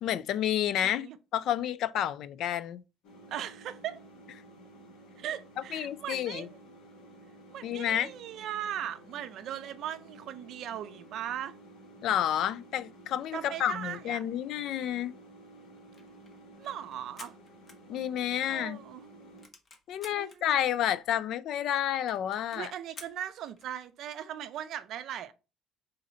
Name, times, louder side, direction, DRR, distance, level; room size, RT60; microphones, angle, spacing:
voice 1, 0.0-1.1 1.3-2.8 5.7-6.5 7.6-8.1 12.0-15.1 17.9-18.8 19.9-22.7, left 10 dB, 65° left, 0.3 m, -30 dB
voice 2, 0.8-1.2 3.3-4.0 5.2-6.5 7.5-11.5 13.3-14.2 16.6-17.3 18.5-19.0 20.1-20.7 22.5-25.3, right 10 dB, 60° right, 0.4 m, -39 dB
sound 1, 3.0-19.5, right 1 dB, 85° left, 1.5 m, -53 dB
sound 2, 15.9-18.4 18.8-18.9 19.1-20.4 21.0-21.1 21.3-21.4 21.6-21.7 22.1-23.8, left 3 dB, 35° left, 0.8 m, -52 dB
3.8 x 2.7 x 4.2 m
cardioid pair, 120°, 0 cm